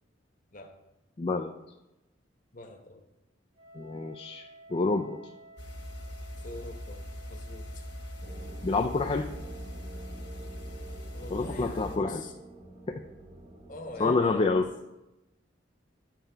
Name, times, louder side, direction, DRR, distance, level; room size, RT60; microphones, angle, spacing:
voice 1, 1.2-1.5 3.7-5.2 8.6-9.3 11.3-12.2 12.9-13.0 14.0-14.7, left 3 dB, 30° left, 4 dB, 0.4 m, -28 dB
voice 2, 2.5-3.1 6.4-7.0 7.3-7.9 11.1-12.3 13.7-14.5, left 2 dB, 45° left, 4 dB, 1.1 m, -44 dB
Wind instrument woodwind instrument, 3.5-12.4, right 2 dB, 90° right, 3.1 m, -53 dB
sound 1, 5.6-12.0, left 1 dB, 65° left, 1.4 m, -41 dB
sound 2, 8.2-14.6, right 2 dB, 30° right, 1.2 m, -49 dB
9.1 x 7.4 x 3.4 m, 0.96 s
head